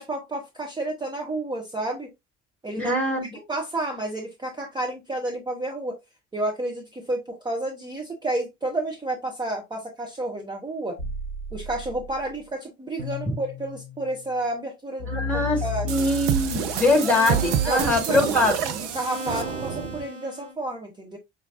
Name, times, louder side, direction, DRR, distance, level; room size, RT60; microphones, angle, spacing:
voice 1, 0.0-2.1 2.6-2.9 3.5-6.0 6.3-11.0 11.5-15.1 15.3-15.9 17.0-17.1 17.7-18.3 18.6-21.2, right 2 dB, 10° right, 1.0 m, -30 dB
voice 2, 2.8-3.3 13.3-13.4 15.1-18.6, left 1 dB, 5° left, 1.7 m, -23 dB
sound 1, 11.0-12.3 13.0-14.4 15.0-20.5, left 3 dB, 85° right, 0.9 m, -35 dB
sound 2, 15.9-20.0, right 9 dB, 55° right, 0.7 m, -28 dB
5.5 x 2.8 x 2.5 m
figure-of-eight pair, 60°, 35 cm